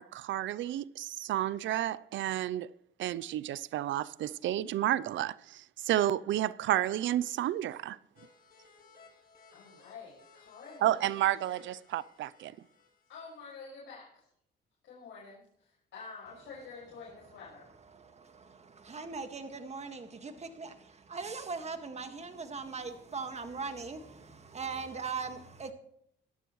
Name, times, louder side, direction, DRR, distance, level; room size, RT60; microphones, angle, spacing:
voice 1, 0.0-2.7 3.0-8.0 10.8-12.5, right 13 dB, 75° right, 0.6 m, -31 dB
sound 1, 8.2-13.6, left 4 dB, 45° left, 4.6 m, -60 dB
voice 2, 9.5-11.0 13.1-14.2 14.8-17.7, left 5 dB, 75° left, 5.8 m, -48 dB
voice 3, 17.9-25.7, right 4 dB, 35° right, 1.8 m, -40 dB
17.5 x 13.0 x 3.2 m
cardioid pair, 90°, 20 cm